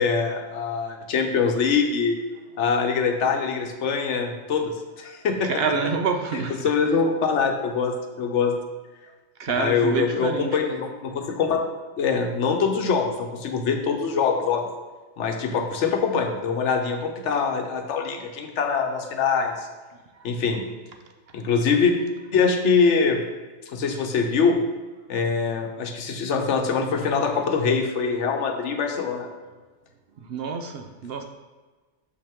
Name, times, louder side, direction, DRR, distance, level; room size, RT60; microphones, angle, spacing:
voice 1, 0.0-2.2 2.6-5.5 6.3-8.5 9.6-11.6 12.0-14.7 15.2-19.7 20.2-20.6 21.3-21.9 22.3-23.2 23.7-24.6 25.1-29.3, left 5 dB, 75° left, 4 dB, 1.0 m, -23 dB
voice 2, 5.4-6.6 9.4-10.6 30.2-31.2, right 5 dB, 60° right, 5 dB, 0.7 m, -27 dB
6.6 x 5.4 x 3.6 m, 1.3 s
omnidirectional pair, 1.3 m